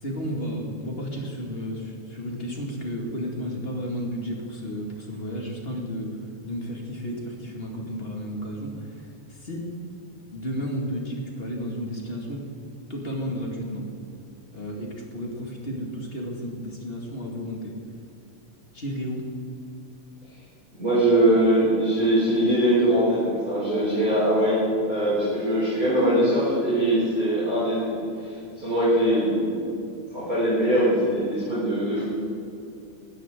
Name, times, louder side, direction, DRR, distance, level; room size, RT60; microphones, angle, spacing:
voice 1, 0.0-6.1 6.4-9.7 10.3-12.4 12.9-13.9 14.5-17.7 18.7-19.3, equal, 25° left, -1 dB, 1.8 m, -32 dB
voice 2, 20.8-29.6 30.1-32.0, right 1 dB, 25° right, -9 dB, 4.7 m, -22 dB
20.0 x 13.5 x 3.8 m, 2.6 s
omnidirectional pair, 3.4 m